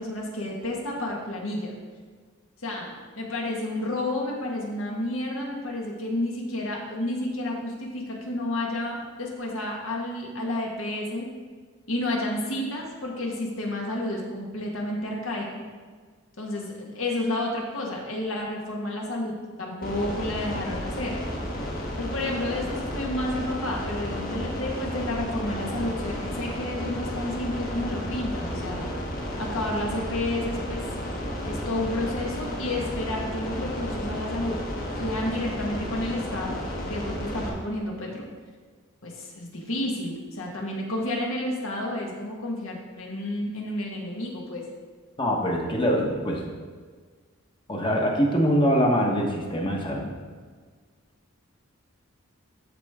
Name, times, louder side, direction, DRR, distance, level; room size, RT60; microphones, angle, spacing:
voice 1, 0.0-1.7 2.6-11.3 11.9-15.6 16.4-21.2 22.0-28.9 29.4-30.8 31.4-34.6 35.0-36.6 36.9-38.2 39.0-44.6, left 1 dB, 65° left, -1 dB, 1.6 m, -31 dB
sound 1, 19.8-37.5, equal, 40° left, 1.4 m, -32 dB
voice 2, 45.2-46.5 47.7-50.1, equal, 25° left, -1 dB, 1.2 m, -23 dB
13.0 x 4.5 x 3.6 m, 1.5 s
head